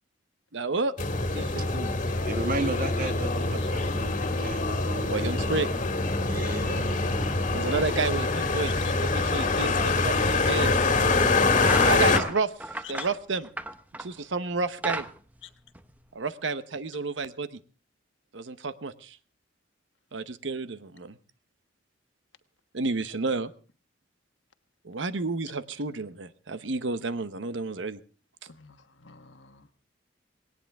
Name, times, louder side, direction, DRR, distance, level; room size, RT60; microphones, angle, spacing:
voice 1, 0.5-0.9 1.3-1.9 5.1-5.7 7.5-10.7 11.8-13.5 14.0-15.1 16.1-17.6 18.3-19.2 20.1-21.2 22.7-23.5 24.8-28.0, right 3 dB, 80° right, 13 dB, 0.9 m, -31 dB
sound 1, 1.0-12.2, left 3 dB, 45° left, 1.8 m, -25 dB
voice 2, 2.2-5.5 6.2-6.9, right 2 dB, 50° right, 9 dB, 1.4 m, -35 dB
voice 3, 8.3-8.9 12.8-13.1 15.4-15.5 28.5-29.8, left 9 dB, 85° left, 8 dB, 1.3 m, -46 dB
sound 2, 10.9-11.1 11.5-14.2 14.6-16.3, right 1 dB, 10° right, 0.7 m, -35 dB
19.0 x 18.0 x 3.5 m, 0.37 s
head